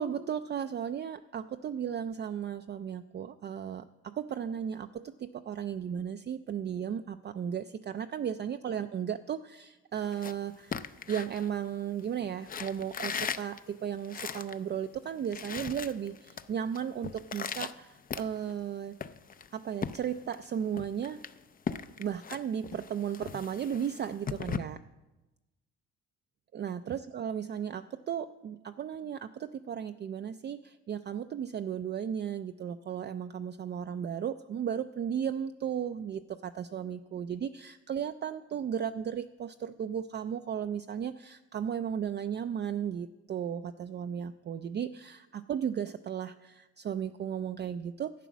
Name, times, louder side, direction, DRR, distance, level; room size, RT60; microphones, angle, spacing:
voice 1, 0.0-19.0 19.5-21.2 22.0-24.8 26.5-48.1, right 8 dB, 35° right, 8 dB, 0.4 m, -35 dB
sound 1, 10.0-12.0 12.4-14.6 14.9-15.0 15.2-16.5 16.7-18.6 19.0-20.5 20.8-24.6, left 6 dB, 30° left, 0.5 m, -39 dB
11.0 x 8.2 x 6.1 m, 1.1 s
cardioid pair, 90°, 30 cm